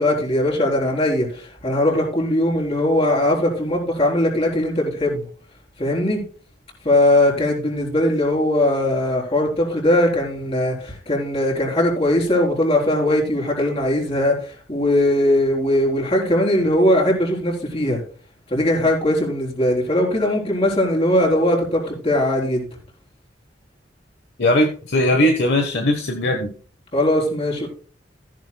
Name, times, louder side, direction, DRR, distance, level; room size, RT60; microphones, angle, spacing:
voice 1, 0.0-5.3 5.8-6.2 6.8-18.0 18.5-22.7 26.9-27.7, left 1 dB, 35° left, -2 dB, 4.2 m, -20 dB
voice 2, 24.4-26.5, left 1 dB, 65° left, 3 dB, 1.3 m, -19 dB
14.5 x 10.5 x 2.3 m, 0.42 s
head